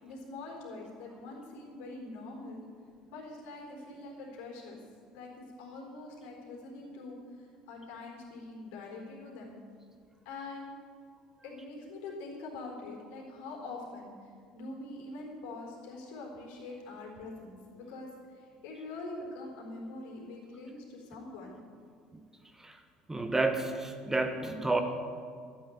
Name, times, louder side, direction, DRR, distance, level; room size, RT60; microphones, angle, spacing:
voice 1, 0.0-2.6 3.1-4.8 5.1-9.6 10.2-10.7 11.4-21.6, left 2 dB, 60° left, 0 dB, 3.9 m, -44 dB
voice 2, 23.1-24.8, right 2 dB, 10° right, 6 dB, 1.3 m, -30 dB
13.0 x 9.0 x 9.2 m, 2.1 s
figure-of-eight pair, 60°, 3 cm